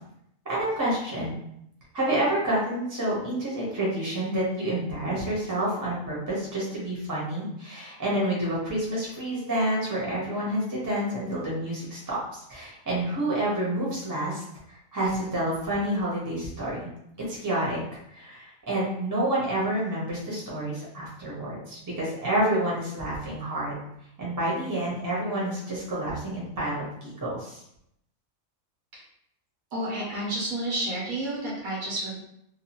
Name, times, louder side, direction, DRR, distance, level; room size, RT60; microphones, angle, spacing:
voice 1, 0.4-1.4 1.9-16.9 17.3-17.8 18.1-23.7 24.2-27.6, right 1 dB, 15° right, -6 dB, 0.8 m, -29 dB
voice 2, 29.7-32.2, right 1 dB, 85° right, -4 dB, 1.2 m, -30 dB
2.8 x 2.3 x 2.9 m, 0.76 s
omnidirectional pair, 1.4 m